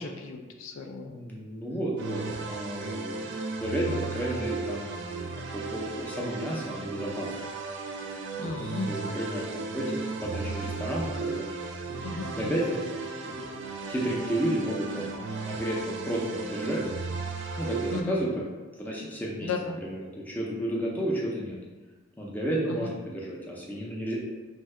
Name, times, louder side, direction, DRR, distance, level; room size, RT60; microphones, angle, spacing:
voice 1, 0.0-1.2 8.4-8.9 12.0-12.6 17.9-18.2 19.4-19.8 22.8-22.9, left 4 dB, 75° left, 4 dB, 0.3 m, -34 dB
voice 2, 1.1-7.3 8.4-11.5 11.9-12.1 12.3-12.8 13.2-13.4 13.9-16.8 17.6-18.5 18.8-21.6 22.2-24.1, right 1 dB, 10° left, -5 dB, 0.5 m, -32 dB
sound 1, 2.0-18.0, right 3 dB, 60° right, 0.3 m, -35 dB
2.7 x 2.2 x 3.2 m, 1.2 s
head